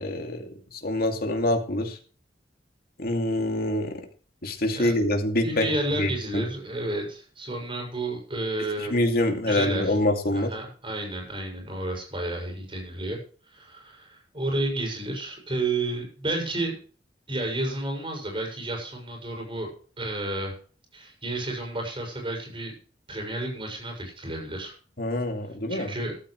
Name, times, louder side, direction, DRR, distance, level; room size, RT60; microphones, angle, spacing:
voice 1, 0.0-2.0 3.0-4.0 4.4-5.7 6.0-6.5 8.9-10.5 25.0-25.9, left 1 dB, 55° left, 3 dB, 2.7 m, -25 dB
voice 2, 5.4-9.1 9.5-10.0 10.3-13.2 13.5-16.7 17.3-19.7 20.0-20.6 20.9-22.8 23.1-24.7 25.7-26.2, right 2 dB, 30° right, 2 dB, 6.5 m, -31 dB
14.5 x 14.0 x 3.3 m, 0.41 s
head